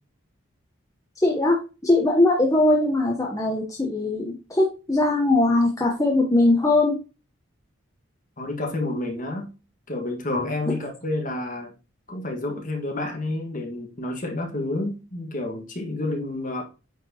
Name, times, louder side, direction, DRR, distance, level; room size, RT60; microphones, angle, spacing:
voice 1, 1.2-7.0, left 2 dB, 15° left, -1 dB, 1.0 m, -20 dB
voice 2, 8.4-9.5 9.9-11.7 12.1-16.6, left 2 dB, 40° left, 1 dB, 1.8 m, -29 dB
9.1 x 4.3 x 3.0 m, 0.31 s
head